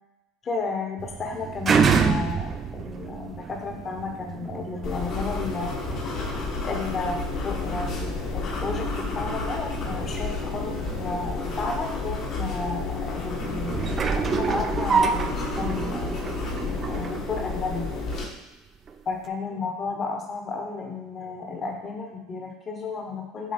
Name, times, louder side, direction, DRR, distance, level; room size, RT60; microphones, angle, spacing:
voice 1, 0.4-5.7 6.6-17.9 19.0-23.5, left 4 dB, 30° left, 1 dB, 1.1 m, -33 dB
sound 1, 1.0-18.3 18.9-19.0, right 6 dB, 30° right, 0.4 m, -29 dB
sound 2, 4.8-18.2, left 4 dB, 50° left, 1.4 m, -31 dB
7.4 x 3.0 x 4.3 m, 0.98 s
supercardioid pair, 125°, 0 cm